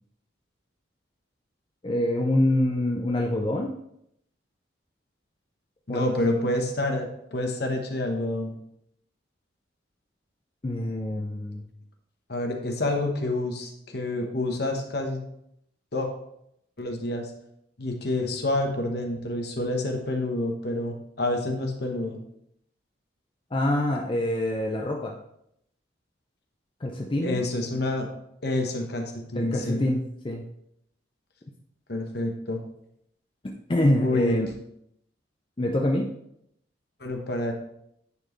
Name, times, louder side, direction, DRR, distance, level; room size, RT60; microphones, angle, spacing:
voice 1, 1.8-3.7 5.9-6.1 10.6-11.6 23.5-25.1 26.8-27.4 29.4-30.4 33.7-34.5 35.6-36.1, left 1 dB, 25° left, 0 dB, 0.5 m, -25 dB
voice 2, 5.9-8.5 12.3-15.2 15.9-16.1 16.8-17.3 17.8-22.2 27.2-28.1 28.4-29.8 31.9-32.6 34.0-34.4 37.0-37.5, left 2 dB, 55° left, 3 dB, 1.0 m, -28 dB
9.8 x 4.4 x 3.1 m, 0.76 s
head